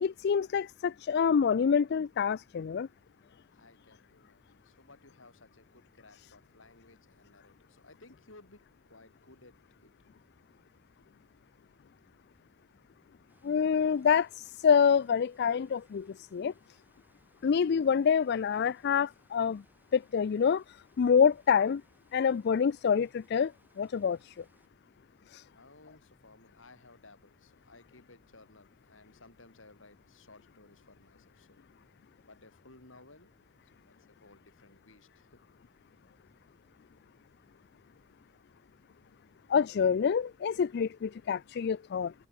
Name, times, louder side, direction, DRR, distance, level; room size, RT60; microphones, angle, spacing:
voice 1, 0.0-2.9 13.4-16.5 17.4-19.6 19.9-21.8 22.1-24.4 25.3-25.4 39.5-42.1, left 6 dB, 55° left, 0.4 m, -27 dB
voice 2, 3.5-9.9 25.4-31.6 32.2-33.3 33.6-35.4, left 2 dB, 75° left, 5.5 m, -58 dB
sound 1, 13.3-24.7, right 1 dB, 10° right, 7.4 m, -70 dB
head